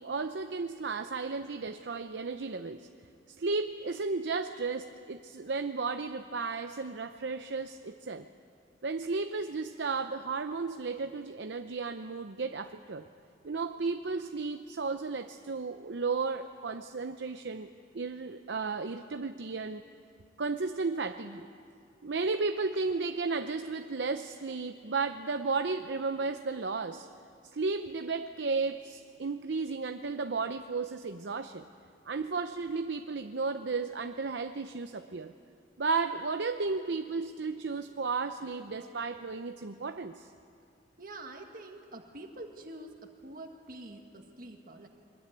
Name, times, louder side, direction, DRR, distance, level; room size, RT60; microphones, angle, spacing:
voice 1, 0.0-2.9 3.3-8.3 8.8-13.0 13.4-17.7 17.9-19.8 20.4-21.5 22.0-27.1 27.5-31.6 32.1-35.3 35.8-40.3, right 4 dB, 75° right, 7 dB, 0.7 m, -34 dB
voice 2, 41.0-44.9, right 2 dB, 50° right, 3 dB, 1.7 m, -46 dB
22.5 x 20.0 x 9.1 m, 2.5 s
head